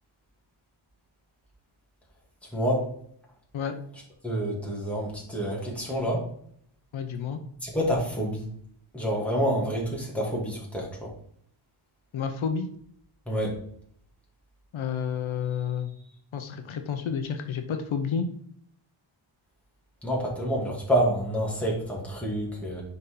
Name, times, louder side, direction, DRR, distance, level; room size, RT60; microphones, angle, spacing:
voice 1, 4.2-6.2 7.6-8.5 8.9-11.1 13.3-13.5 20.0-22.8, equal, 5° left, -4 dB, 2.5 m, -28 dB
voice 2, 6.9-7.4 12.1-12.7 14.7-15.9 16.3-18.3, left 6 dB, 70° left, 6 dB, 0.9 m, -30 dB
10.0 x 4.2 x 3.9 m, 0.64 s
wide cardioid pair, 145°, 49 cm